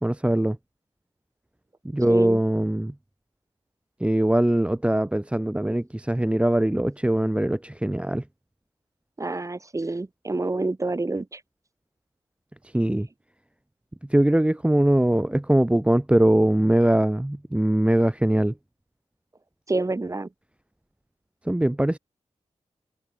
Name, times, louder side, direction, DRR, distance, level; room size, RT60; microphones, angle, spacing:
voice 1, 0.0-0.6 1.8-2.9 4.0-8.2 12.6-13.1 14.1-18.5 21.4-22.0, right 1 dB, 10° right, 1.5 m, -21 dB
voice 2, 2.1-2.4 9.2-11.4 19.7-20.3, right 2 dB, 25° right, 7.5 m, -28 dB
wide cardioid pair, 145°, 12 cm